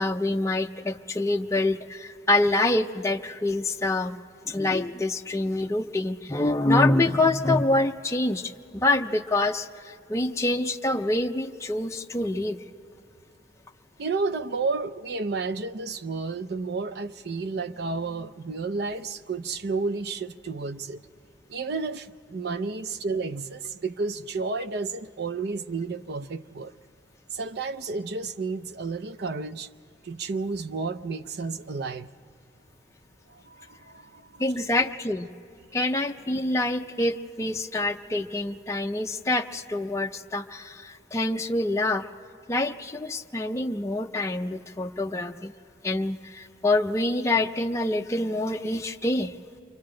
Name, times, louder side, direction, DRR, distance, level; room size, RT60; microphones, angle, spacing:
voice 1, 0.0-4.2 4.5-12.6 34.4-35.3 35.7-42.1 42.5-45.5 45.8-49.3, left 2 dB, 15° left, 0.4 m, -26 dB
voice 2, 14.0-21.0 21.5-26.7 27.3-29.7 30.0-32.1 33.3-34.4, right 4 dB, 60° right, 0.5 m, -31 dB
28.5 x 24.0 x 3.8 m
head